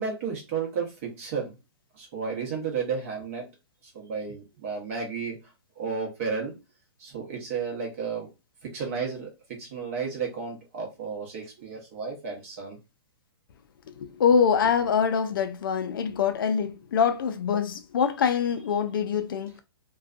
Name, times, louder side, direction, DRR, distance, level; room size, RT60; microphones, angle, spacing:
voice 1, 0.0-1.6 1.9-3.5 3.8-6.5 7.0-8.3 8.6-9.3 9.6-12.8, right 5 dB, 35° right, 0.9 m, -33 dB
voice 2, 14.0-19.6, left 7 dB, 55° left, 0.4 m, -24 dB
2.5 x 2.3 x 2.4 m
hypercardioid pair, 165°, 13 cm